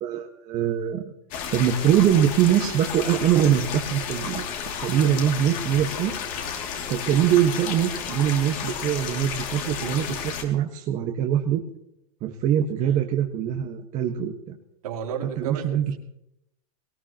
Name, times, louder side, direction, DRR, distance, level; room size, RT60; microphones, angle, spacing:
voice 1, 0.0-1.0 1.5-4.5 4.8-6.1 6.9-11.6 12.2-14.6 15.4-15.8, right 10 dB, 40° right, 2 dB, 1.5 m, -23 dB
sound 1, 1.3-10.4, left 7 dB, 45° left, 2.7 m, -32 dB
voice 2, 14.8-16.0, right 7 dB, 75° right, -1 dB, 3.7 m, -33 dB
19.5 x 19.0 x 3.0 m, 0.80 s
hypercardioid pair, 110°, 19 cm